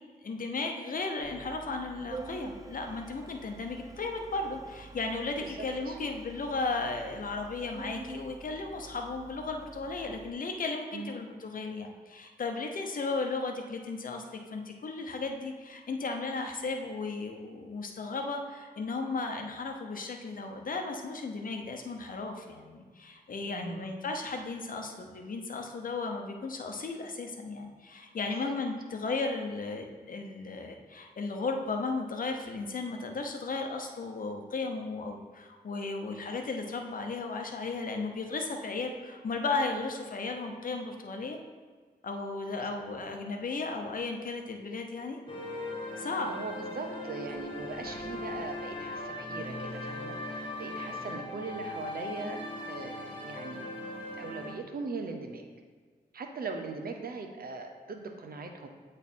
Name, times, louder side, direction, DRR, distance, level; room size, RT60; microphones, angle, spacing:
voice 1, 0.2-41.4 42.0-45.2 46.0-46.3, left 3 dB, 60° left, 4 dB, 0.8 m, -35 dB
Organ, 1.2-10.3, right 3 dB, 20° right, 0.3 m, -47 dB
voice 2, 5.4-6.0 10.9-11.1 23.4-23.9 28.3-28.5 42.6-42.7 46.3-52.4 52.7-53.7 54.2-55.4 56.1-58.7, right 3 dB, 70° right, 4 dB, 0.8 m, -40 dB
sound 1, 45.3-54.5, left 1 dB, 35° left, 1.3 m, -39 dB
8.2 x 3.3 x 4.3 m, 1.5 s
cardioid pair, 60°, 16 cm